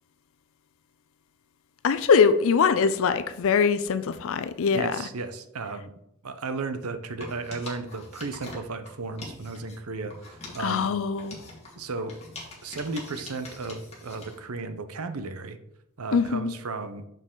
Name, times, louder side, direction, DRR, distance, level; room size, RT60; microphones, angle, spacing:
voice 1, 1.8-4.9 10.6-11.4 16.1-16.5, left 6 dB, 65° left, 0.4 m, -22 dB
voice 2, 4.7-5.9 6.2-10.9 11.8-12.2 12.6-15.6 16.0-17.0, right 3 dB, 85° right, 0.7 m, -34 dB
sound 1, 7.1-9.8 10.1-14.4, left 2 dB, 30° left, 2.0 m, -44 dB
6.6 x 6.3 x 3.8 m
head